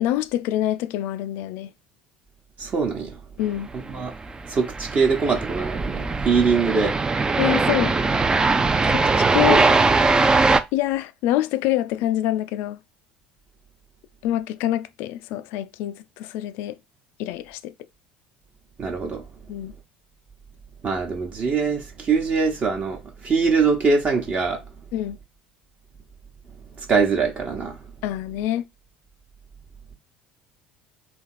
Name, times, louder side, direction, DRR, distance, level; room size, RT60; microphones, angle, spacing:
voice 1, 0.0-1.7 3.4-3.7 7.4-8.0 8.8-9.6 10.7-12.8 14.2-16.8 17.2-17.7 19.5-19.7 24.9-25.2 28.0-28.6, left 13 dB, 55° left, 0.4 m, -26 dB
voice 2, 2.6-3.2 3.9-4.1 4.5-7.0 9.5-9.7 18.8-19.2 20.8-24.6 26.7-27.8, right 5 dB, 35° right, 1.0 m, -23 dB
sound 1, 3.9-10.6, right 3 dB, 15° right, 0.4 m, -20 dB
3.5 x 2.8 x 4.6 m
figure-of-eight pair, 65°, 4 cm